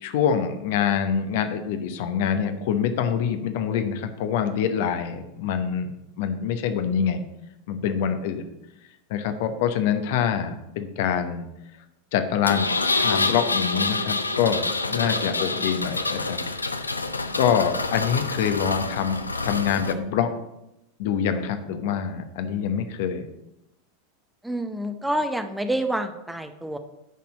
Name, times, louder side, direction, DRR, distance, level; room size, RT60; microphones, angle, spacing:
voice 1, 0.0-5.9 6.2-7.2 7.7-8.4 9.1-11.4 12.1-16.4 17.4-20.3 21.0-23.2, left 8 dB, 60° left, 8 dB, 0.9 m, -25 dB
Engine, 12.5-19.9, left 3 dB, 90° left, 0.5 m, -27 dB
voice 2, 24.4-26.8, right 1 dB, 5° right, 8 dB, 0.7 m, -27 dB
9.3 x 4.3 x 6.2 m, 0.89 s
figure-of-eight pair, 85°, 0 cm